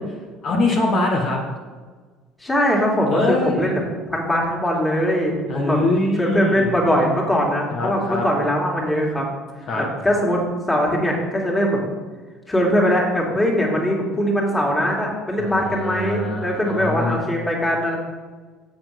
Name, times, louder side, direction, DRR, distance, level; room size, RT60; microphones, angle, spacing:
voice 1, 0.4-1.4 3.1-3.7 5.5-6.7 7.7-8.2 9.7-9.8 15.4-17.2, left 2 dB, 50° left, -1 dB, 1.7 m, -23 dB
voice 2, 2.4-3.8 4.1-5.8 6.2-9.3 9.8-10.4 10.7-11.8 12.5-18.0, equal, 15° left, -2 dB, 2.9 m, -21 dB
7.3 x 7.1 x 6.1 m, 1.4 s
supercardioid pair, 90°, 0 cm